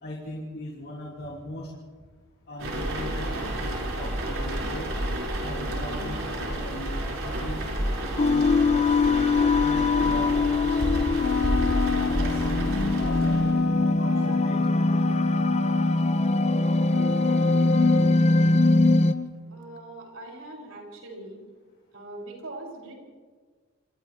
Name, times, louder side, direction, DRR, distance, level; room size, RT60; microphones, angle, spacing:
voice 1, 0.0-1.7 2.5-4.9 5.4-9.0 9.6-11.5 12.0-13.5 14.0-15.0, left 1 dB, 50° left, -2 dB, 3.0 m, -39 dB
sound 1, 2.6-13.6, right 1 dB, 65° right, 5.8 m, -30 dB
sound 2, 8.2-19.1, left 3 dB, 30° left, 0.7 m, -22 dB
Wind instrument woodwind instrument, 11.2-19.3, left 5 dB, 75° left, 0.6 m, -30 dB
voice 2, 19.5-21.4 21.9-22.9, right 2 dB, 85° right, -1 dB, 7.3 m, -41 dB
27.5 x 27.5 x 3.6 m, 1.5 s
head